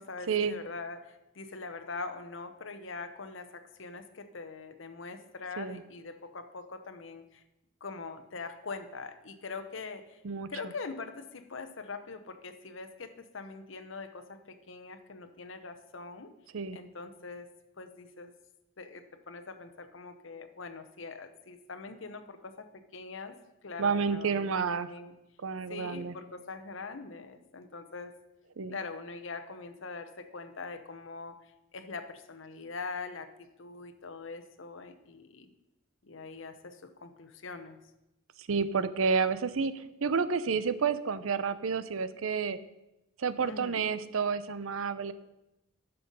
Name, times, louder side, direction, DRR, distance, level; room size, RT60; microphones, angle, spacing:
voice 1, 0.0-7.4 7.8-10.2 10.5-16.3 16.7-17.5 17.8-18.3 18.8-22.7 22.9-23.3 23.6-25.1 25.7-28.2 28.7-35.5 36.0-37.8 43.4-43.8, left 4 dB, 65° left, 9 dB, 0.9 m, -43 dB
voice 2, 23.8-24.9 25.4-26.2 28.6-28.8 38.4-42.6 43.2-45.1, right 5 dB, 80° right, 14 dB, 0.6 m, -30 dB
11.0 x 6.9 x 5.4 m, 0.93 s
head